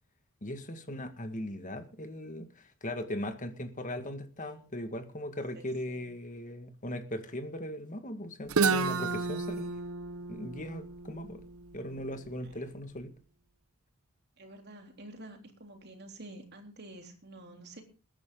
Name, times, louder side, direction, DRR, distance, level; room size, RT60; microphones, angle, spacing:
voice 1, 0.4-9.8 10.3-11.4 11.7-13.1, left 1 dB, 35° left, 8 dB, 1.9 m, -39 dB
voice 2, 4.4-4.7 5.6-6.0 14.4-17.8, right 1 dB, 50° right, 4 dB, 3.6 m, -49 dB
Guitar, 8.5-12.3, right 4 dB, 70° right, 0.9 m, -32 dB
21.5 x 10.5 x 3.9 m, 0.35 s
head